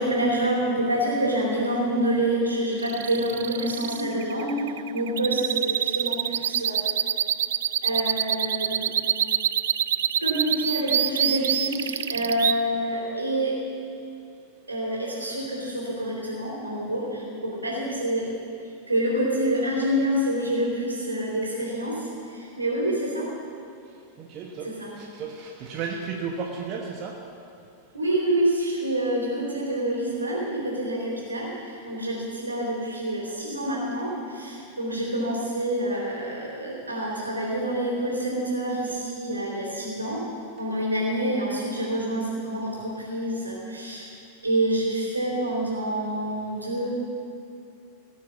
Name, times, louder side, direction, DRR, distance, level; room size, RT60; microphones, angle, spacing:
voice 1, 0.0-6.8 7.8-8.9 10.2-13.6 14.7-18.3 18.9-23.3 24.6-24.9 27.9-40.2 40.6-44.1 44.4-46.9, right 1 dB, 80° right, -4 dB, 3.7 m, -27 dB
sound 1, 2.8-12.5, right 10 dB, 60° right, 0.3 m, -25 dB
voice 2, 24.2-24.7 25.0-27.2, right 5 dB, 40° right, 1 dB, 1.1 m, -33 dB
18.0 x 6.5 x 7.2 m, 2.6 s
figure-of-eight pair, 90°, 0 cm